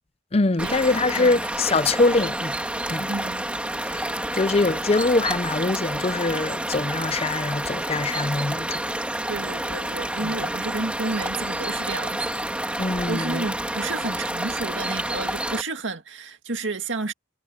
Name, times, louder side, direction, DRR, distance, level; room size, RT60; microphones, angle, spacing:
voice 1, 0.3-2.6 2.9-3.1 3.9-8.9 10.2-10.3 12.8-13.5, left 3 dB, 35° left, 0.6 m, -23 dB
sound 1, 0.6-15.6, right 1 dB, 5° right, 2.1 m, -29 dB
voice 2, 3.1-3.4 9.3-12.3 13.1-17.1, right 3 dB, 90° right, 2.0 m, -31 dB
head